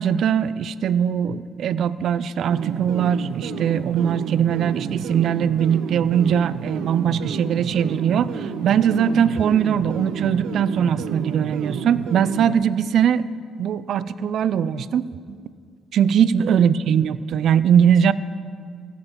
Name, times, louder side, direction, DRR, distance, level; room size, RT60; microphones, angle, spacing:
voice 1, 0.0-13.2 13.6-15.4 15.9-18.1, right 8 dB, 70° right, 16 dB, 0.4 m, -21 dB
sound 1, 2.5-12.5, right 7 dB, 85° right, 0.7 m, -30 dB
16.0 x 7.4 x 5.2 m, 2.1 s
cardioid pair, 90°, 0 cm